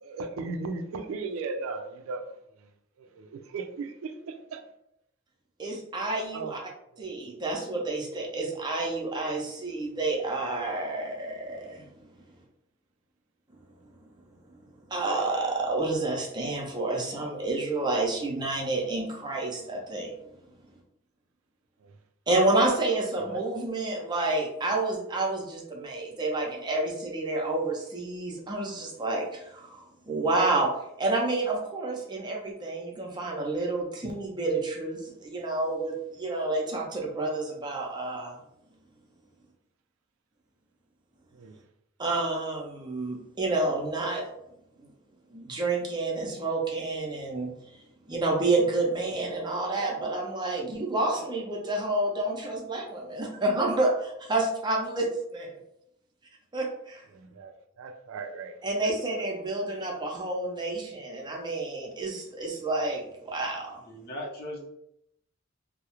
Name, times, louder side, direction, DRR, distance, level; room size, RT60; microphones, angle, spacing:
voice 1, 0.0-2.2 2.6-2.7 3.0-4.6 6.3-6.5 6.9-7.1 21.8-21.9 23.3-23.4 41.3-41.5 57.1-59.0, right 4 dB, 80° right, 7 dB, 0.3 m, -37 dB
voice 2, 5.6-6.6 7.0-12.1 14.9-20.1 22.3-30.7 31.0-38.4 42.0-44.2 44.8-44.9 45.3-47.5 48.1-55.5 56.5-57.0 58.6-63.7, right 2 dB, 20° right, -1 dB, 0.5 m, -29 dB
voice 3, 63.9-64.7, left 1 dB, 50° left, -3 dB, 0.7 m, -38 dB
2.3 x 2.0 x 2.9 m, 0.78 s
head